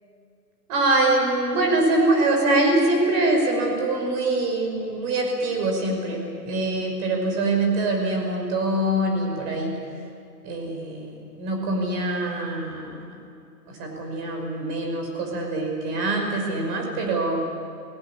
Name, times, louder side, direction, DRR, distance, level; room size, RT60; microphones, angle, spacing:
voice 1, 0.7-9.8 10.4-13.0 13.7-17.4, right 2 dB, 25° right, 1 dB, 5.6 m, -24 dB
24.0 x 18.5 x 9.8 m, 2.4 s
hypercardioid pair, 145°, 49 cm